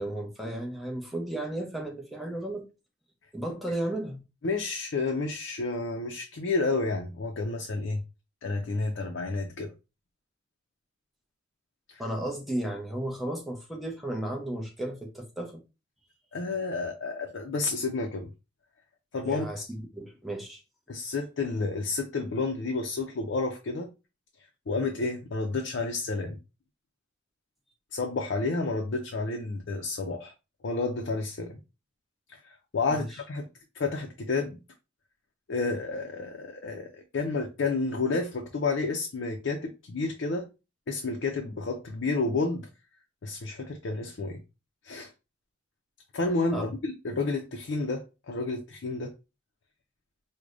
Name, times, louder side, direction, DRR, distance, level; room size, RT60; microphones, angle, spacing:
voice 1, 0.0-2.6 3.3-4.2 12.0-15.6 19.2-20.6 32.9-33.1 46.5-46.7, right 1 dB, ahead, 0.7 m, -34 dB
voice 2, 4.4-8.0 8.4-9.7 11.9-12.0 16.3-18.3 19.1-19.7 20.9-23.9 24.7-26.4 27.9-30.3 30.6-31.6 32.3-33.5 33.7-34.6 35.5-40.5 40.9-42.7 43.2-44.4 44.8-45.1 46.1-49.1, left 3 dB, 75° left, 0.5 m, -30 dB
4.7 x 2.2 x 2.5 m
head